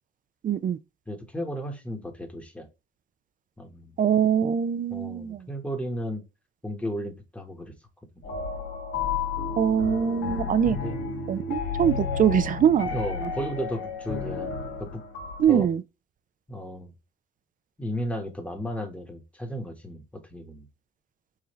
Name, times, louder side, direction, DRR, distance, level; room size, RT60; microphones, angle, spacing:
voice 1, 0.4-0.8 4.0-5.4 9.6-10.8 11.3-12.9 13.2-13.3 15.4-15.8, right 8 dB, 45° right, 0.4 m, -23 dB
voice 2, 1.1-2.7 3.6-3.9 4.9-6.2 6.6-7.7 8.1-8.2 10.2-11.0 12.9-15.0 15.5-15.7 16.5-16.9 17.8-20.0 20.3-20.7, equal, 5° left, 1.3 m, -34 dB
sound 1, 8.2-15.5, left 5 dB, 85° left, 1.8 m, -32 dB
4.9 x 2.6 x 3.1 m
cardioid pair, 90°, 20 cm